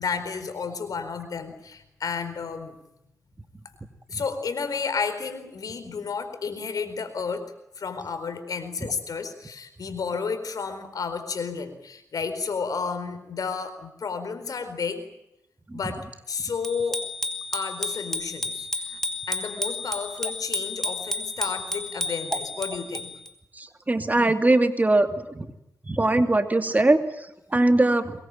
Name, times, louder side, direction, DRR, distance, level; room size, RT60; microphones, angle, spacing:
voice 1, 0.0-2.8 4.1-7.5 7.8-15.0 15.7-17.0 17.5-19.0 19.3-23.1, left 5 dB, 75° left, 10 dB, 4.4 m, -32 dB
Bicycle bell, 16.6-23.3, left 2 dB, 5° left, 3.6 m, -31 dB
voice 2, 23.6-25.5 25.8-28.1, right 2 dB, 25° right, 8 dB, 2.5 m, -21 dB
23.5 x 21.5 x 9.0 m, 0.85 s
cardioid pair, 70°, 6 cm